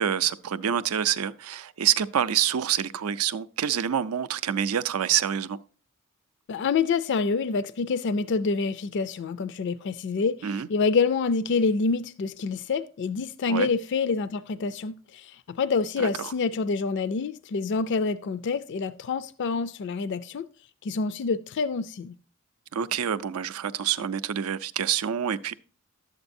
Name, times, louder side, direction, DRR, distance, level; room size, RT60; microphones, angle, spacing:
voice 1, 0.0-5.6 10.4-10.7 13.5-13.7 16.0-16.3 22.7-25.5, right 9 dB, 75° right, 0.5 m, -27 dB
voice 2, 6.5-20.5 20.8-22.1, left 4 dB, 50° left, 0.3 m, -27 dB
11.5 x 8.0 x 2.6 m
head